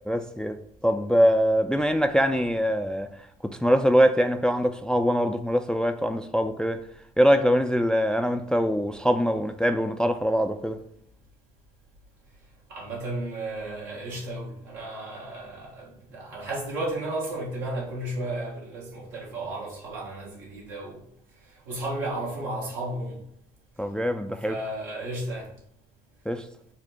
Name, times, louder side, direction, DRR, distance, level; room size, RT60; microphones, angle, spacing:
voice 1, 0.1-6.8 7.2-10.8 23.8-24.6 26.3-26.4, equal, 5° left, 0.3 m, -23 dB
voice 2, 12.7-21.0 21.7-23.2 24.4-25.5, right 1 dB, 80° right, 1.3 m, -33 dB
4.4 x 2.1 x 4.1 m
hypercardioid pair, 55°, 20 cm